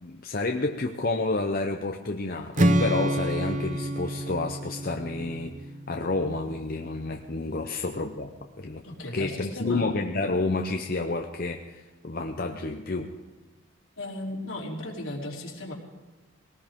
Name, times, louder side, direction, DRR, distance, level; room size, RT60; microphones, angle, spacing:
voice 1, 0.0-5.6 5.9-8.8 9.1-13.2, left 3 dB, 45° left, 3 dB, 0.7 m, -30 dB
Strum, 2.5-6.7, right 1 dB, 35° right, 0.7 m, -28 dB
voice 2, 8.8-9.9 14.0-15.7, left 1 dB, 75° left, -2 dB, 3.3 m, -36 dB
19.5 x 18.5 x 3.7 m, 1.2 s
head